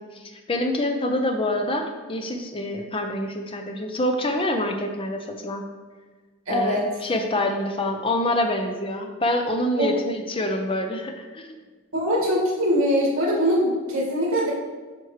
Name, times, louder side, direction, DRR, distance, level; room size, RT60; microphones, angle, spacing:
voice 1, 0.0-5.6 6.5-11.6, left 1 dB, 25° left, 4 dB, 0.6 m, -26 dB
voice 2, 6.5-6.8 9.8-9.9 11.9-14.5, equal, 65° right, -5 dB, 1.9 m, -22 dB
7.7 x 5.2 x 3.2 m, 1.4 s
head